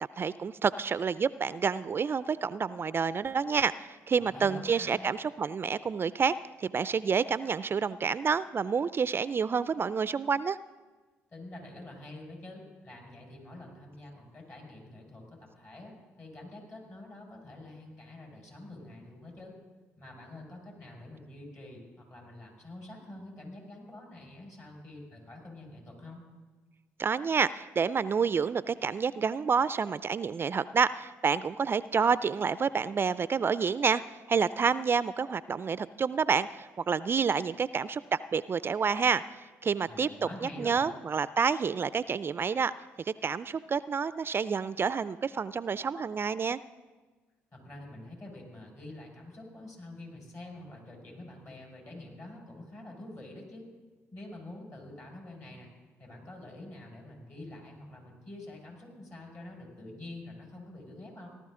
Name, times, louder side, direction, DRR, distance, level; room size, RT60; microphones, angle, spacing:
voice 1, 0.2-10.6 27.0-38.0 38.3-39.2 39.6-40.1 40.4-42.7 43.1-46.6, right 6 dB, 40° right, 16 dB, 0.3 m, -29 dB
voice 2, 4.2-4.9 11.3-19.5 20.0-26.3 39.9-40.9 47.5-53.7 54.1-55.7 56.0-61.3, left 1 dB, 50° left, -1 dB, 5.5 m, -46 dB
18.0 x 12.0 x 3.7 m, 1.3 s
hypercardioid pair, 55°, 6 cm